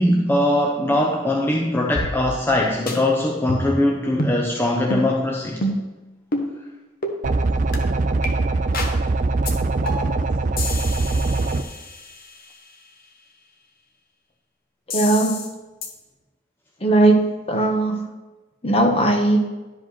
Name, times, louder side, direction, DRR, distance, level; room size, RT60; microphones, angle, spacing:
voice 1, 0.0-5.6, left 1 dB, 10° left, -1 dB, 0.7 m, -21 dB
sound 1, 2.0-2.6 2.9-3.0 3.5-3.8 4.2-4.4 4.9-5.1 5.6-5.9 6.3-6.5 7.0-7.2 7.7-7.8 8.2-8.3 8.7-9.0 9.5-9.6 9.9-10.2 10.6-12.4 14.9-15.5 15.8-15.9, left 1 dB, 50° left, 1.2 m, -28 dB
sound 2, 7.2-11.6, right 3 dB, 45° right, 0.4 m, -22 dB
voice 2, 14.9-15.5 16.8-18.0 18.6-19.5, right 2 dB, 30° left, 2 dB, 1.2 m, -18 dB
12.0 x 5.1 x 4.3 m, 1.2 s
head